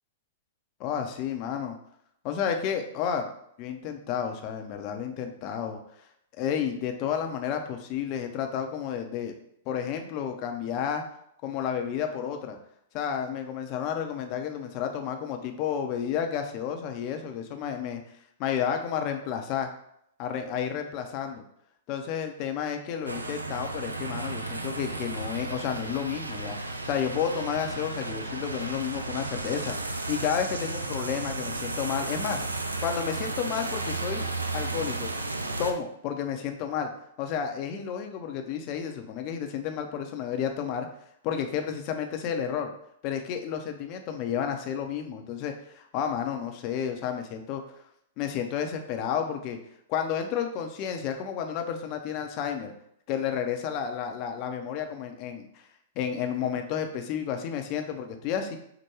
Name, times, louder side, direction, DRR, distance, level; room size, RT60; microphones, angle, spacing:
voice 1, 0.8-1.8 2.2-3.3 3.6-5.8 6.4-9.3 9.7-11.0 11.4-12.6 12.9-18.0 18.4-19.7 20.2-21.4 21.9-32.4 32.8-34.2 34.5-35.1 35.6-36.9 37.2-40.9 41.2-42.7 43.0-47.8 48.2-49.6 49.9-52.7 53.1-55.7 56.0-58.6, left 8 dB, 40° left, 5 dB, 0.6 m, -31 dB
sound 1, 23.1-35.7, right 2 dB, 90° right, 0.3 m, -33 dB
4.7 x 2.2 x 3.0 m, 0.73 s
figure-of-eight pair, 110°, 0 cm